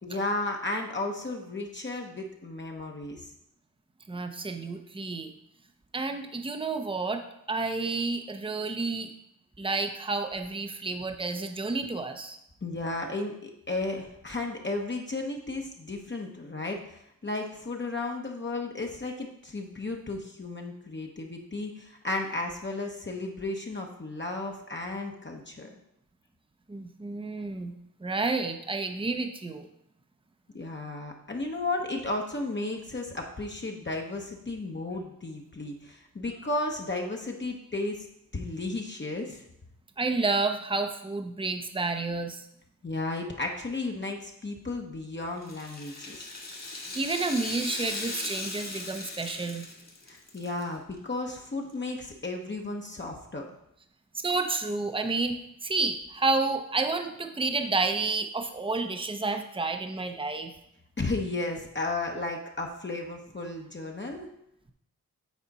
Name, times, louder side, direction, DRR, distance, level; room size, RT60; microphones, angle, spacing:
voice 1, 0.0-3.3 12.6-25.8 30.5-38.1 38.3-39.5 42.8-46.3 50.1-53.5 61.0-64.3, left 2 dB, 30° left, 1 dB, 1.0 m, -34 dB
voice 2, 4.1-5.3 5.9-7.2 7.5-9.1 9.6-12.4 26.7-27.7 28.0-29.7 40.0-42.5 46.9-49.6 54.1-55.4 55.6-60.5, right 3 dB, 15° right, 6 dB, 0.8 m, -30 dB
Rattle (instrument), 45.4-50.6 50.9-51.0 51.9-52.0, left 2 dB, 50° left, 1.7 m, -38 dB
8.3 x 4.3 x 4.1 m, 0.79 s
cardioid pair, 45°, 35 cm